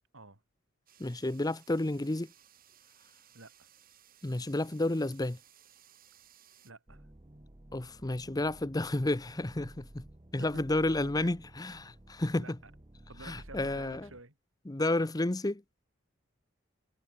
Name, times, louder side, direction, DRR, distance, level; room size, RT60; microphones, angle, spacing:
sound 1, 0.9-6.7, right 10 dB, 45° right, 4.7 m, -61 dB
voice 1, 1.0-2.3 4.2-5.4 7.7-10.0 10.3-12.6 13.2-14.1 14.7-15.6, left 2 dB, 20° left, 0.7 m, -31 dB
voice 2, 3.3-3.7 6.6-7.1 10.4-10.7 11.0-11.3 12.3-12.7 13.1-14.3, right 2 dB, 90° right, 5.0 m, -50 dB
sound 2, 6.9-14.2, right 1 dB, 25° right, 1.1 m, -53 dB
head